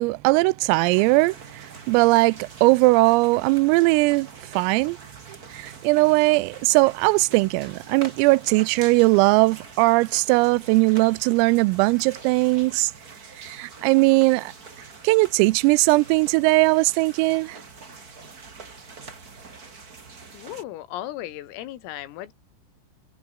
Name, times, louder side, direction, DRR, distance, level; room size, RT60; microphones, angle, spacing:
voice 1, 0.0-4.3 4.5-5.0 5.5-12.9 13.4-14.5 15.0-17.6, right 23 dB, 85° right, 3.3 m, -19 dB
sound 1, 0.9-20.6, right 4 dB, 30° right, 1.7 m, -45 dB
voice 2, 20.3-22.3, left 14 dB, 85° left, 4.3 m, -36 dB
omnidirectional pair, 6.0 m